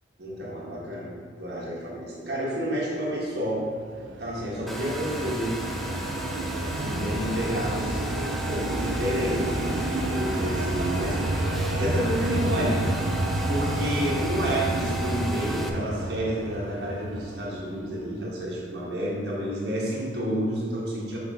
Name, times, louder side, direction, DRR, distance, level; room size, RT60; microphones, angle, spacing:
voice 1, 0.2-3.7 4.2-5.6 6.7-11.2 11.7-21.2, equal, 60° right, -5 dB, 1.5 m, -30 dB
sound 1, 3.7-18.2, right 1 dB, 85° right, 0.6 m, -30 dB
Domestic sounds home sounds, 4.7-15.7, equal, ahead, 0.4 m, -36 dB
sound 2, 6.5-8.6, left 1 dB, 80° left, 1.1 m, -41 dB
5.7 x 5.6 x 3.6 m, 2.1 s
head